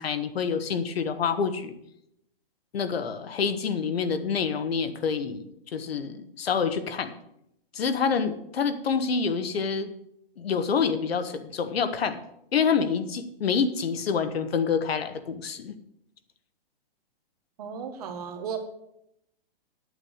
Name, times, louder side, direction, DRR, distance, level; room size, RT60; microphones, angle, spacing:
voice 1, 0.0-1.7 2.7-5.5 5.7-7.1 7.7-9.9 10.4-12.2 12.5-15.7, left 6 dB, 80° left, 10 dB, 1.4 m, -27 dB
voice 2, 17.6-18.6, right 7 dB, 40° right, 6 dB, 1.6 m, -35 dB
8.7 x 8.7 x 6.4 m, 0.79 s
hypercardioid pair, 170°, 30 cm